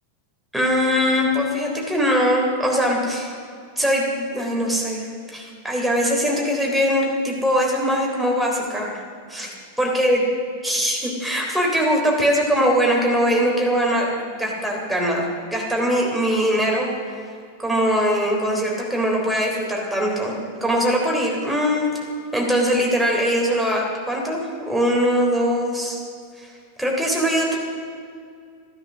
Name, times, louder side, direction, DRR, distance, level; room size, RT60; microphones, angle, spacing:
voice 1, 0.5-3.3 3.8-9.0 9.3-10.2 10.6-15.2 15.5-16.9 17.6-21.9 22.3-26.0 26.4-26.5 26.8-27.6, equal, ahead, -2 dB, 3.5 m, -21 dB
14.5 x 12.5 x 6.3 m, 2.2 s
figure-of-eight pair, 90°, 0 cm